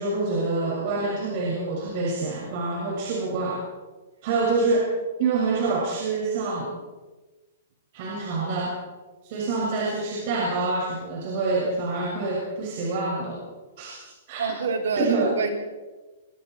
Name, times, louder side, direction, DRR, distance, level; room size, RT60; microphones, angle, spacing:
voice 1, 0.0-3.6 4.2-4.9 5.2-6.7 7.9-8.7 9.2-13.4 13.8-14.4 15.0-15.2, right 3 dB, 45° right, -3 dB, 6.7 m, -26 dB
voice 2, 14.4-15.5, right 5 dB, 85° right, 4 dB, 4.2 m, -26 dB
25.0 x 24.0 x 4.7 m, 1.2 s
hypercardioid pair, 150°, 0 cm